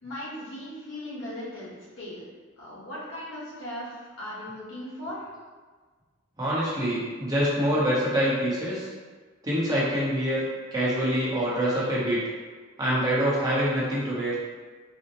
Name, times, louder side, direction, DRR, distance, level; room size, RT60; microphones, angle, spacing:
voice 1, 0.0-2.2 2.6-5.3, left 1 dB, 75° left, -7 dB, 1.0 m, -38 dB
voice 2, 6.4-8.9 9.4-10.4 10.7-12.2 12.8-14.3, equal, 20° right, -8 dB, 0.7 m, -25 dB
4.1 x 2.0 x 2.8 m, 1.4 s
head